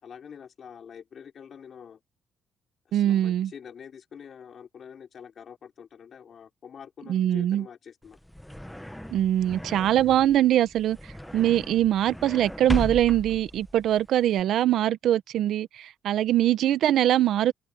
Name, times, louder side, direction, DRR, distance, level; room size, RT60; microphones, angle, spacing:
voice 1, 0.0-2.0 2.9-8.2, left 7 dB, 55° left, 4.3 m, -46 dB
voice 2, 2.9-3.5 7.1-7.7 9.1-11.0 11.3-17.5, right 12 dB, 75° right, 1.1 m, -22 dB
sound 1, 8.0-14.4, equal, 5° left, 1.1 m, -37 dB
open air
cardioid pair, 90°, 0 cm